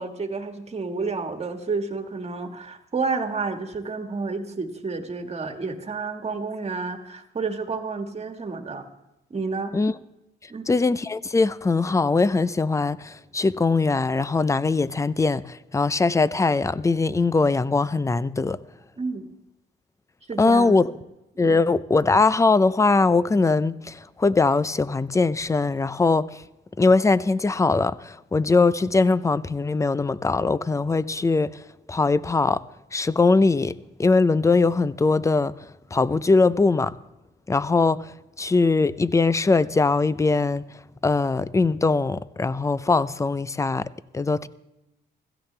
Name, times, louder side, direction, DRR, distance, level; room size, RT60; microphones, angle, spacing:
voice 1, 0.0-8.8 9.3-9.7 10.5-10.6 19.0-19.3 20.3-20.8 21.4-21.6, right 4 dB, 30° right, 1.7 m, -30 dB
voice 2, 10.7-18.6 20.4-20.9 21.4-26.4 26.8-31.6 31.9-32.6 32.9-33.7 34.0-35.5 35.9-36.9 37.5-38.1 38.4-40.6 41.0-43.9 44.1-44.5, left 3 dB, 15° left, 0.5 m, -21 dB
16.5 x 14.5 x 3.3 m
cardioid pair, 90°, 20 cm